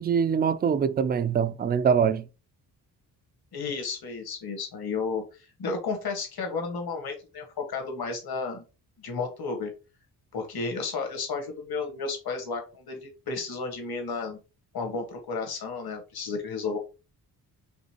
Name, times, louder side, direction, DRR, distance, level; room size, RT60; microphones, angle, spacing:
voice 1, 0.0-2.2, right 7 dB, 25° right, 0.3 m, -23 dB
voice 2, 3.5-5.2 5.6-8.6 9.0-9.7 10.3-14.4 14.7-16.8, left 4 dB, 65° left, 1.5 m, -32 dB
5.4 x 2.8 x 2.9 m
cardioid pair, 70°, 40 cm